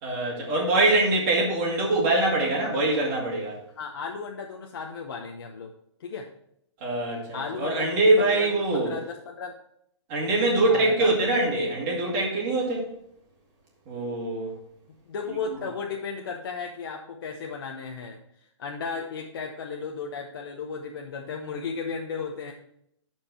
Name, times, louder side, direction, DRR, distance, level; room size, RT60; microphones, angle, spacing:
voice 1, 0.0-3.6 6.8-8.9 10.1-12.9 13.9-14.5, right 2 dB, 25° right, -3 dB, 2.4 m, -23 dB
voice 2, 3.7-5.7 6.0-6.3 7.3-9.5 10.6-11.2 15.1-18.2 18.6-22.5, left 5 dB, 50° left, 1 dB, 0.8 m, -35 dB
12.0 x 4.7 x 4.3 m, 0.73 s
hypercardioid pair, 175°, 15 cm